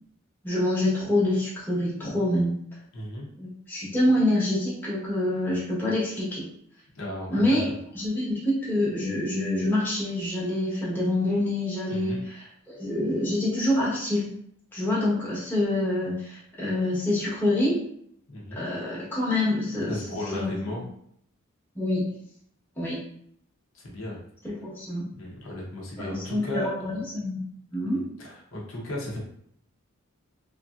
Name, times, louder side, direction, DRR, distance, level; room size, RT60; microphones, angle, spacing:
voice 1, 0.4-2.5 3.4-6.5 7.3-7.7 7.9-14.3 14.7-17.8 18.5-19.9 20.3-20.5 21.7-22.1 22.8-23.0 24.4-25.1 26.0-27.4 27.7-28.0, left 1 dB, 10° left, -8 dB, 1.0 m, -26 dB
voice 2, 2.9-3.3 6.9-7.6 11.9-12.2 18.3-18.6 19.9-20.9 23.7-24.2 25.2-26.7 27.9-29.2, left 1 dB, 70° left, -4 dB, 0.9 m, -35 dB
3.3 x 2.6 x 2.4 m, 0.68 s
head